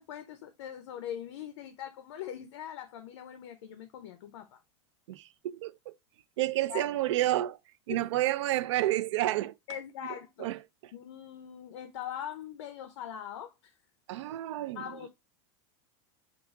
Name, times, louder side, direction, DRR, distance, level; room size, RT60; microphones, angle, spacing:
voice 1, 0.0-4.6 6.7-6.9 7.9-8.0 9.7-10.5 10.9-13.8 14.7-15.1, left 10 dB, 70° left, 0.6 m, -41 dB
voice 2, 5.1-6.0 6.4-7.6 7.9-9.6 10.4-10.6 14.1-15.1, right 15 dB, 75° right, 0.4 m, -30 dB
4.6 x 2.4 x 3.5 m
supercardioid pair, 170°, 15 cm